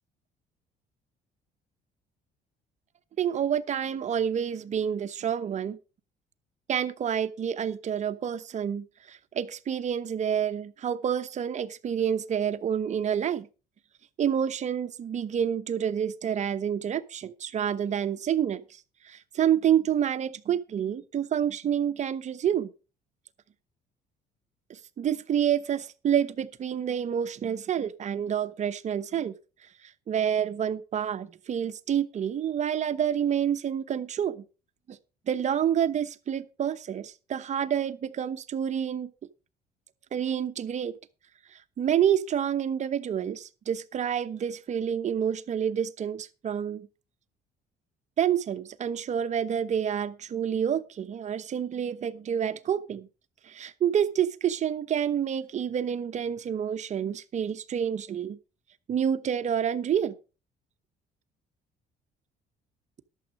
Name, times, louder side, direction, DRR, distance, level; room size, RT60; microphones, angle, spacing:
voice 1, 3.2-5.8 6.7-13.5 14.2-22.7 24.7-29.3 30.1-34.4 34.9-35.0 35.3-39.1 40.1-40.9 41.5-46.9 48.2-53.1 53.4-58.4 58.9-60.2, right 9 dB, 45° right, 0.9 m, -28 dB
11.5 x 7.2 x 5.3 m
cardioid pair, 110°, 17 cm